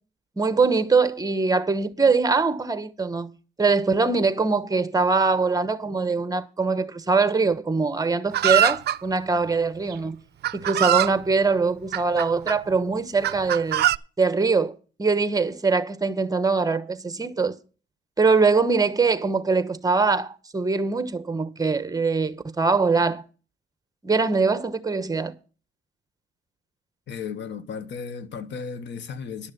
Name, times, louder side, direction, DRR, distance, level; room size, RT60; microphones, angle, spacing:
voice 1, 0.4-10.2 10.5-13.9 14.2-17.5 18.2-23.2 24.0-25.3, right 4 dB, 20° right, 1.1 m, -22 dB
Chicken rooster, 8.3-9.0 9.9-10.0 10.4-11.1 11.9-12.6 13.2-14.0, right 13 dB, 55° right, 0.5 m, -22 dB
voice 2, 27.1-29.5, left 6 dB, 65° left, 1.2 m, -35 dB
11.5 x 6.5 x 6.9 m
cardioid pair, 90°, 20 cm